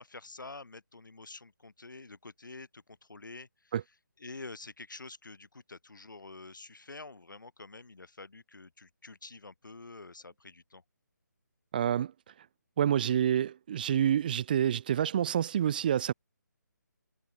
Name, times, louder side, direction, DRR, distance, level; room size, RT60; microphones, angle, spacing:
voice 1, 0.0-3.7 4.2-10.8, left 3 dB, 85° left, 5.2 m, -48 dB
voice 2, 11.7-12.1 12.8-16.1, right 10 dB, 30° right, 0.7 m, -27 dB
hypercardioid pair, 165°, 10 cm